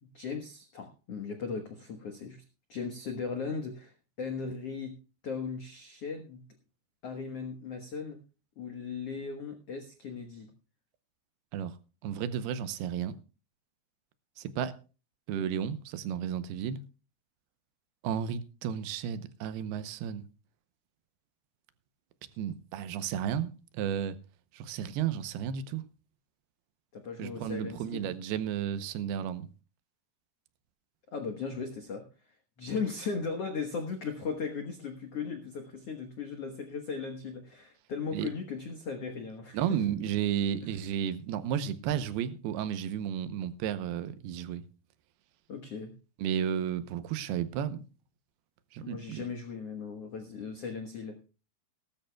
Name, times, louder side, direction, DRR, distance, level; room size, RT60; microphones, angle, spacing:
voice 1, 0.0-2.4 2.7-5.0 5.2-6.4 7.0-8.2 8.6-10.5 26.9-28.1 31.1-32.1 32.6-39.8 40.6-40.8 45.5-45.9 48.8-51.2, left 5 dB, 75° left, 1.4 m, -37 dB
voice 2, 12.0-13.1 14.4-14.7 15.3-16.8 18.0-20.2 22.4-24.2 24.5-25.8 27.2-29.5 38.1-38.3 39.5-44.6 46.2-47.9 48.7-49.2, right 9 dB, 75° right, 2.7 m, -33 dB
18.5 x 13.0 x 2.3 m
omnidirectional pair, 4.8 m